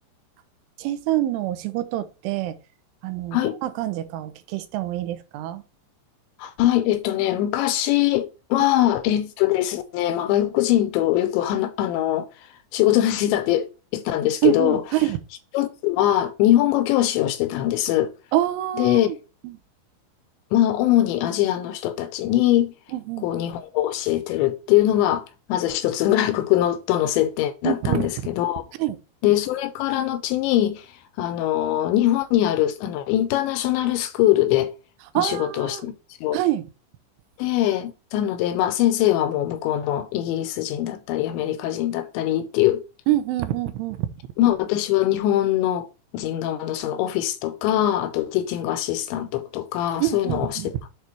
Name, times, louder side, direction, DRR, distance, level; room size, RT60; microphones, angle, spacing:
voice 1, 0.8-2.6 3.0-5.6 14.4-15.2 18.3-19.2 19.4-19.5 22.9-23.3 27.7-28.1 28.8-29.0 35.1-35.9 36.3-36.6 43.1-44.1 50.0-50.7, right 14 dB, 85° right, 3.2 m, -25 dB
voice 2, 6.4-14.8 15.5-18.1 18.8-19.1 20.5-22.7 23.2-28.6 29.2-34.7 35.2-35.9 36.2-36.4 37.4-42.8 44.4-45.9 46.1-50.9, left 13 dB, 80° left, 2.8 m, -22 dB
8.3 x 4.6 x 4.4 m
omnidirectional pair, 5.6 m